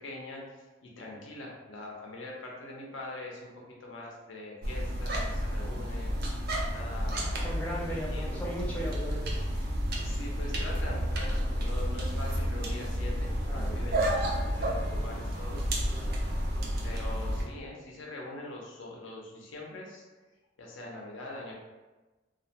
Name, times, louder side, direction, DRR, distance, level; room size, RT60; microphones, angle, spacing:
voice 1, 0.0-6.4 6.7-7.4 7.8-8.6 10.0-15.7 15.9-16.0 16.8-20.1 20.6-21.5, left 2 dB, 90° left, -2 dB, 0.6 m, -43 dB
sound 1, 4.6-17.4, equal, 55° right, 0.4 m, -31 dB
voice 2, 7.4-9.4 13.5-14.0 14.9-15.0 15.9-16.2, equal, 10° left, -6 dB, 0.4 m, -38 dB
2.4 x 2.1 x 2.8 m, 1.2 s
head